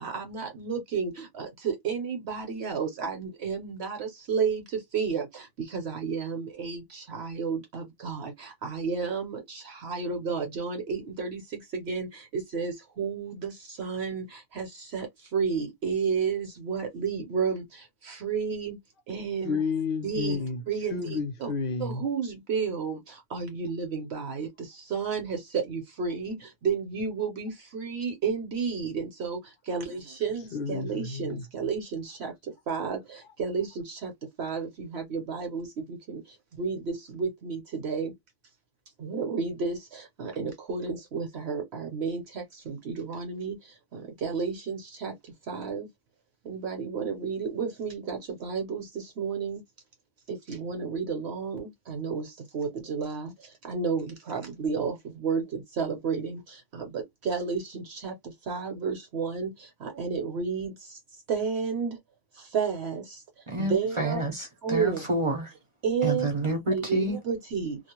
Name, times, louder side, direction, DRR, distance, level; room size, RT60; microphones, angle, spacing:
voice 1, 0.0-1.1 1.4-4.6 4.9-5.2 5.7-6.8 7.1-8.3 8.6-9.4 9.8-11.4 11.9-12.1 12.5-13.5 13.8-14.2 14.6-14.7 14.9-15.1 15.3-17.6 18.2-18.7 19.1-19.6 20.0-20.4 20.7-21.0 21.4-21.5 21.8-23.0 23.3-24.5 24.9-26.4 26.6-29.4 29.7-32.3 32.7-33.0 33.4-34.1 34.4-35.7 36.1-36.2 36.6-38.1 39.0-39.8 40.2-42.2 42.7-43.5 44.2-45.1 45.5-45.9 46.5-48.8 49.2-49.6 50.5-52.2 52.5-53.3 53.7-54.9 55.2-55.4 55.8-56.4 56.9-58.1 58.5-59.5 60.0-60.7 61.3-62.0 62.5-63.0 63.6-64.2 64.6-65.0 65.8-66.3 66.7-67.8, right 5 dB, 65° right, 1.0 m, -31 dB
voice 2, 19.4-20.6 20.9-22.0 30.5-31.4, left 5 dB, 55° left, 0.7 m, -31 dB
voice 3, 63.5-65.5 66.0-67.2, right 1 dB, 35° right, 0.6 m, -28 dB
2.4 x 2.0 x 2.9 m
omnidirectional pair, 1.2 m